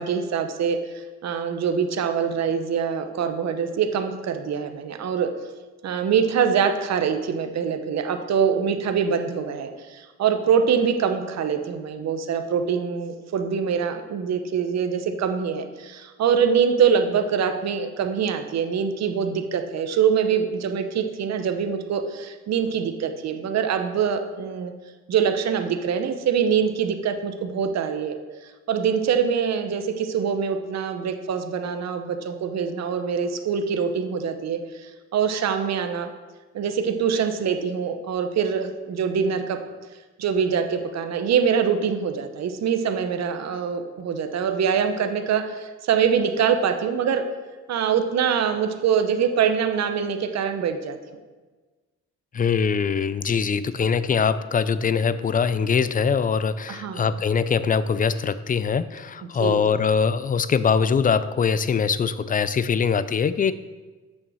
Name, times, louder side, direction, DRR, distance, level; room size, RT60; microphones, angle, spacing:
voice 1, 0.0-5.3 5.8-24.7 25.1-28.1 28.7-36.1 36.5-39.6 40.2-47.2 47.7-51.0 53.8-53.9 56.7-57.2 59.4-59.6, right 7 dB, 60° right, 7 dB, 0.9 m, -24 dB
voice 2, 52.3-63.5, left 6 dB, 30° left, 14 dB, 0.4 m, -22 dB
6.5 x 6.1 x 6.2 m, 1.3 s
cardioid pair, 90°, 30 cm